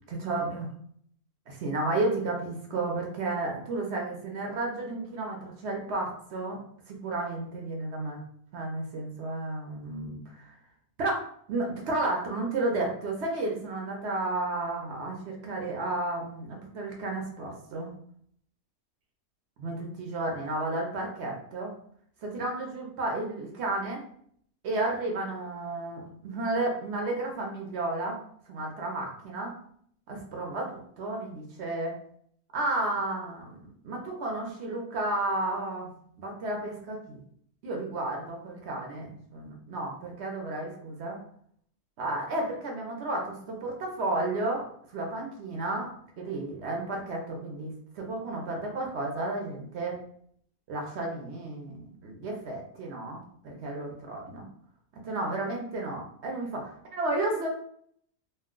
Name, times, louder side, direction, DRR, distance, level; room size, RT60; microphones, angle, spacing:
voice 1, 0.1-0.7 1.5-6.6 6.9-8.2 8.5-10.5 11.0-17.9 19.6-21.7 22.2-24.0 24.6-28.2 28.5-29.5 30.1-31.9 32.5-35.9 36.2-37.2 37.6-41.2 42.0-45.9 46.2-50.0 50.7-54.5 55.0-57.5, right 2 dB, 60° right, 0 dB, 0.8 m, -32 dB
2.5 x 2.2 x 3.6 m, 0.64 s
omnidirectional pair, 1.6 m